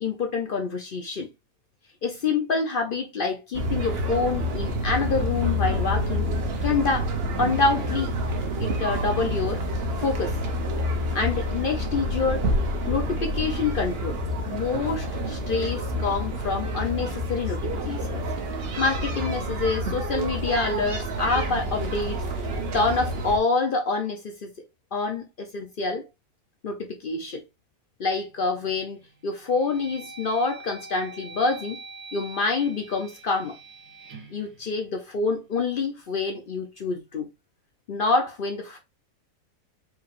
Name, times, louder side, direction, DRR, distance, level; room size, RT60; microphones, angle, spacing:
voice 1, 0.0-1.3 2.0-6.3 6.6-7.1 7.4-8.1 8.6-9.6 10.0-10.3 11.1-12.4 12.9-14.2 14.5-18.2 18.8-22.2 22.7-24.5 24.9-26.0 26.6-27.4 28.0-29.0 29.2-31.8 32.1-33.5 34.3-37.3 37.9-38.8, left 4 dB, 60° left, 0.6 m, -27 dB
sound 1, 3.5-23.4, equal, 50° right, 0.9 m, -28 dB
sound 2, 28.4-28.8 29.3-35.5, right 4 dB, 70° right, 1.6 m, -45 dB
4.7 x 3.3 x 2.5 m
omnidirectional pair, 1.6 m